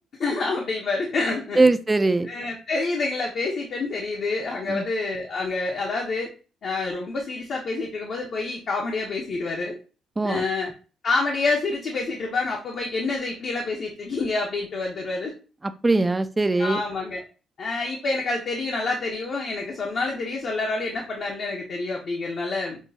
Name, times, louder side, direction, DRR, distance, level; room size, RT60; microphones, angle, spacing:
voice 1, 0.2-1.6 2.3-6.3 6.6-9.8 10.2-10.7 11.0-15.3 16.6-17.2 17.6-22.8, left 3 dB, 60° left, -1 dB, 0.8 m, -27 dB
voice 2, 1.6-2.3 4.7-4.8 10.2-10.4 15.6-16.8, right 2 dB, 20° right, 11 dB, 0.3 m, -21 dB
5.9 x 2.2 x 2.7 m, 0.34 s
cardioid pair, 90°, 0 cm